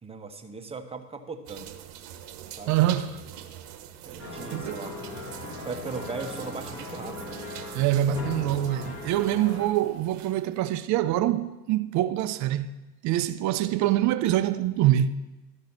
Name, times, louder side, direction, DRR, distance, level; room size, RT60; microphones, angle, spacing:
voice 1, 0.0-1.8 2.5-2.8 4.0-5.0 5.3-7.3, right 4 dB, 10° right, 0.9 m, -38 dB
sound 1, 1.5-10.6, right 10 dB, 60° right, 1.1 m, -44 dB
voice 2, 2.7-3.2 4.5-4.8 7.7-12.7 13.0-15.1, right 13 dB, 35° right, 0.5 m, -25 dB
sound 2, 4.2-9.7, left 3 dB, 30° left, 1.9 m, -39 dB
12.0 x 5.4 x 6.0 m
hypercardioid pair, 90°, 50 cm